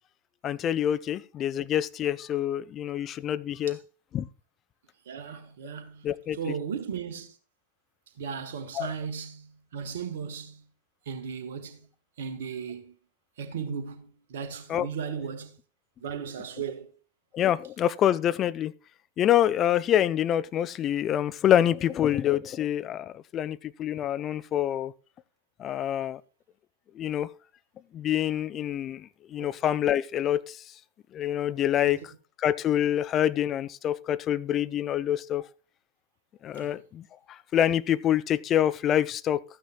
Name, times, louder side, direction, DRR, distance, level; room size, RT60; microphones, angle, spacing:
voice 1, 0.4-3.8 4.1-4.3 6.0-6.5 8.7-8.9 14.7-14.9 17.3-18.7 19.2-24.9 25.6-26.2 27.0-27.3 27.9-30.6 31.1-32.0 32.4-35.4 36.4-39.4, left 11 dB, 30° left, 0.5 m, -26 dB
voice 2, 5.1-6.1 6.3-7.3 8.2-10.6 11.1-11.8 12.2-12.9 13.4-15.6 16.0-16.9 29.4-29.5 31.8-32.1 36.6-36.7, right 7 dB, 60° right, 1.4 m, -36 dB
13.5 x 9.2 x 2.3 m
figure-of-eight pair, 90°, 0 cm